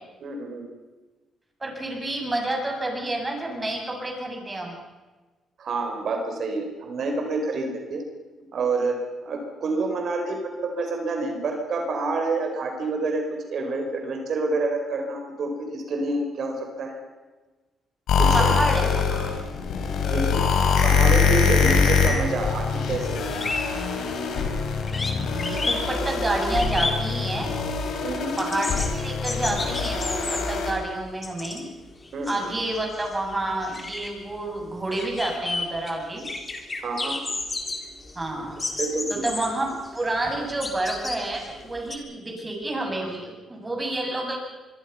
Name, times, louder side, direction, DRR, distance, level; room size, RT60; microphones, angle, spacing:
voice 1, 0.2-0.6 5.6-8.0 8.5-9.0 9.2-17.0 18.2-18.5 20.1-20.4 20.8-23.2 28.0-28.3 32.1-32.4 36.8-37.2 38.8-39.2, right 3 dB, 60° right, 3 dB, 4.8 m, -28 dB
voice 2, 1.6-4.7 18.3-19.3 21.4-21.5 25.2-27.5 28.4-31.7 32.3-36.3 38.1-38.6 39.1-44.4, right 2 dB, 20° right, 1 dB, 7.7 m, -29 dB
sound 1, 18.1-30.7, left 5 dB, 75° left, 4.9 m, -23 dB
sound 2, 23.4-24.6 24.9-27.6 27.9-31.7 32.0-42.0, left 3 dB, 25° left, 3.6 m, -33 dB
25.5 x 22.5 x 5.8 m, 1.3 s
cardioid pair, 90°, 0 cm